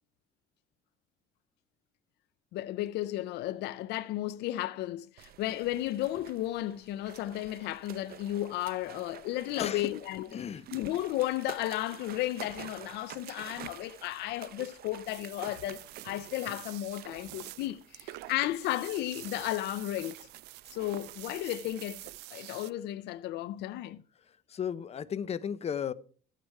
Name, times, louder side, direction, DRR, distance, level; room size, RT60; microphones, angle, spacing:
voice 1, 2.5-10.3 10.7-20.2 20.7-22.0 22.3-24.0, left 15 dB, 80° left, 0.6 m, -34 dB
sound 1, 5.2-22.2, right 11 dB, 65° right, 0.8 m, -50 dB
voice 2, 9.6-9.9 10.3-10.7 24.3-25.9, left 8 dB, 40° left, 0.8 m, -35 dB
sound 2, 15.0-22.7, right 18 dB, 90° right, 0.5 m, -47 dB
14.5 x 9.2 x 4.7 m
cardioid pair, 110°, 17 cm